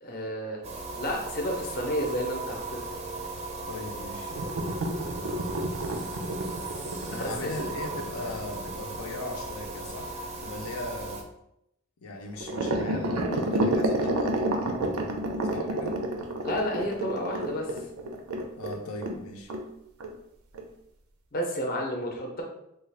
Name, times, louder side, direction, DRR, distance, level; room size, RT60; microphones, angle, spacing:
voice 1, 0.0-0.6 0.9-3.0 7.2-7.5 16.4-17.8 21.3-22.4, equal, 40° left, 0 dB, 0.6 m, -31 dB
sound 1, 0.6-11.2, right 2 dB, 30° right, 0.4 m, -37 dB
voice 2, 3.7-4.3 7.1-11.3 12.0-14.5 15.2-16.0 18.6-19.5, left 2 dB, 85° left, 2 dB, 0.6 m, -38 dB
sound 2, 4.3-9.0 12.4-19.2 19.5-19.7 20.0-20.1 20.5-20.6, right 1 dB, 85° right, 0.5 m, -30 dB
3.8 x 2.3 x 3.3 m, 0.80 s
head